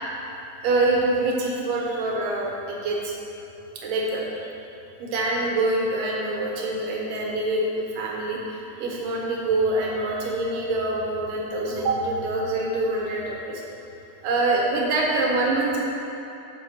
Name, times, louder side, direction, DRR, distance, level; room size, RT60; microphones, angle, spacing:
voice 1, 0.6-3.1 3.8-4.2 5.0-13.6 14.2-15.8, right 2 dB, 80° right, -3 dB, 2.8 m, -25 dB
6.9 x 6.0 x 6.3 m, 3.0 s
omnidirectional pair, 3.8 m